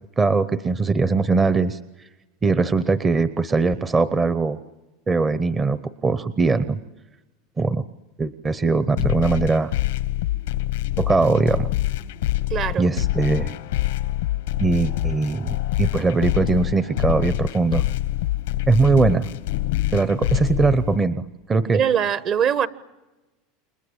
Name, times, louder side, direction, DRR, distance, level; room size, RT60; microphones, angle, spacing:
voice 1, 0.2-1.8 2.4-4.6 5.1-6.8 7.6-7.8 8.2-9.7 11.0-11.7 12.8-13.5 14.6-17.8 18.7-19.3 19.9-21.2 21.5-21.8, right 3 dB, 20° right, 14 dB, 0.9 m, -20 dB
sound 1, 9.0-21.0, left 15 dB, 85° left, 1.2 m, -25 dB
voice 2, 12.5-12.9 21.7-22.7, right 8 dB, 40° right, 16 dB, 1.2 m, -21 dB
29.0 x 23.0 x 8.8 m, 1.1 s
supercardioid pair, 140°, 0 cm